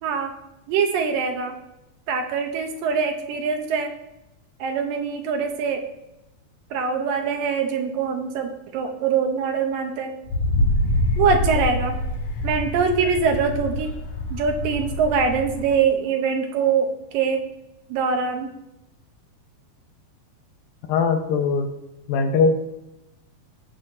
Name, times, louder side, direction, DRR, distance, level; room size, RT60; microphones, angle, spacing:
voice 1, 0.0-0.3 0.7-1.5 2.1-3.9 4.6-5.8 6.7-10.1 11.2-12.0 12.4-13.9 14.3-17.4 17.9-18.5, right 6 dB, 75° right, 4 dB, 2.4 m, -23 dB
Wind, 10.3-15.8, left 1 dB, 60° left, 2.3 m, -25 dB
voice 2, 20.9-21.7 22.1-22.5, left 5 dB, 80° left, 5 dB, 2.6 m, -20 dB
16.5 x 6.9 x 2.6 m, 0.90 s
omnidirectional pair, 4.3 m